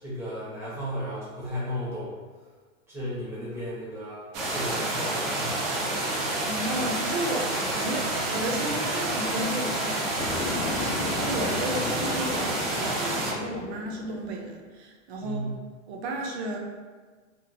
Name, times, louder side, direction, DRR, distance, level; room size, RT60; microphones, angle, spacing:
voice 1, 0.0-2.2 2.9-5.6 6.0-6.2 15.2-15.6, equal, 5° right, -8 dB, 0.5 m, -35 dB
sound 1, 4.3-13.3, right 2 dB, 85° right, 0.8 m, -29 dB
voice 2, 6.4-15.4 15.9-16.6, right 1 dB, 55° right, 1 dB, 0.6 m, -34 dB
sound 2, 7.5-14.5, left 4 dB, 65° left, 0.6 m, -37 dB
3.0 x 2.0 x 2.5 m, 1.4 s
hypercardioid pair, 140°, 39 cm